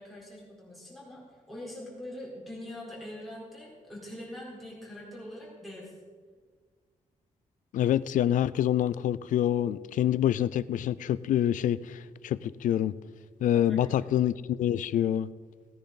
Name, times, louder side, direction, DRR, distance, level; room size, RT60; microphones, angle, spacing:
voice 1, 0.0-5.9 13.5-14.0, left 1 dB, ahead, -6 dB, 4.0 m, -43 dB
voice 2, 7.7-12.9 13.4-15.3, left 11 dB, 75° left, 17 dB, 0.4 m, -26 dB
17.0 x 10.0 x 4.0 m, 1.5 s
wide cardioid pair, 160°, 13 cm